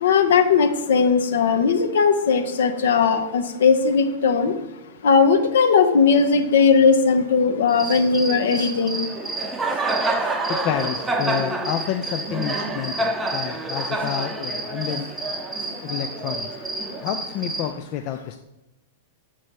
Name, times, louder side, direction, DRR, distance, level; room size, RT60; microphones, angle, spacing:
voice 1, 0.0-4.5 5.0-9.0, left 5 dB, 60° left, 7 dB, 0.7 m, -18 dB
Cricket, 7.7-17.7, right 2 dB, 10° right, 0.7 m, -28 dB
voice 2, 10.5-15.1 15.8-16.5 17.0-18.4, left 10 dB, 40° left, 8 dB, 0.3 m, -29 dB
6.9 x 4.3 x 4.5 m, 0.95 s
figure-of-eight pair, 100°, 0 cm